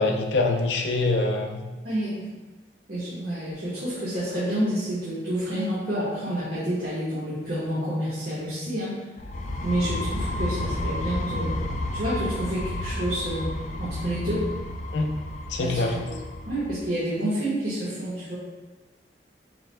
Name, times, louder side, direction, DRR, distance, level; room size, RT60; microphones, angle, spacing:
voice 1, 0.0-1.6 14.9-15.1 15.5-16.0, left 3 dB, 85° left, 3 dB, 0.6 m, -24 dB
voice 2, 1.8-2.3 2.9-9.0 9.6-11.6 11.9-13.5 13.8-14.5 15.6-16.1 16.5-18.4, right 1 dB, 65° right, -10 dB, 1.3 m, -29 dB
sound 1, 9.2-16.8, left 1 dB, 40° left, 0.3 m, -31 dB
7.4 x 3.1 x 2.2 m, 1.2 s
head